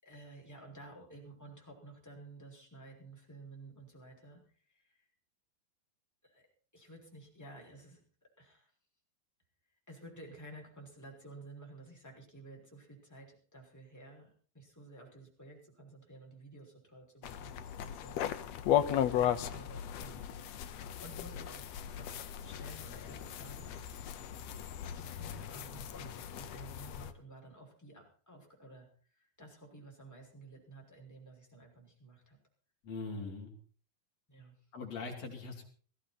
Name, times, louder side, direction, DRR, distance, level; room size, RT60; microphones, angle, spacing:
voice 1, 0.0-5.1 6.2-6.5 6.7-8.0 8.4-8.7 9.9-20.5 21.0-24.6 24.8-32.4 34.3-34.6, right 2 dB, 5° left, -1 dB, 5.6 m, -53 dB
sound 1, 17.2-27.1, left 10 dB, 65° left, 1.7 m, -36 dB
voice 2, 32.8-33.5 34.7-35.6, left 3 dB, 45° left, 1 dB, 4.4 m, -41 dB
19.0 x 15.5 x 4.3 m, 0.42 s
omnidirectional pair, 4.2 m